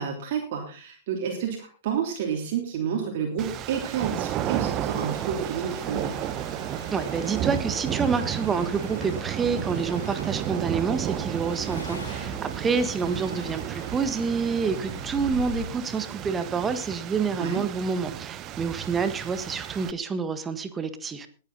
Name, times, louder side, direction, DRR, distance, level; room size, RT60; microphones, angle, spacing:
voice 1, 0.0-6.1 17.3-17.6, right 7 dB, 50° right, 1 dB, 3.3 m, -30 dB
sound 1, 3.4-19.9, right 11 dB, 30° right, 1.0 m, -33 dB
sound 2, 4.9-15.7, left 2 dB, 85° left, 4.6 m, -42 dB
voice 2, 6.9-21.3, right 5 dB, 15° right, 11 dB, 1.5 m, -28 dB
20.5 x 9.2 x 4.0 m, 0.38 s
figure-of-eight pair, 110°, 0 cm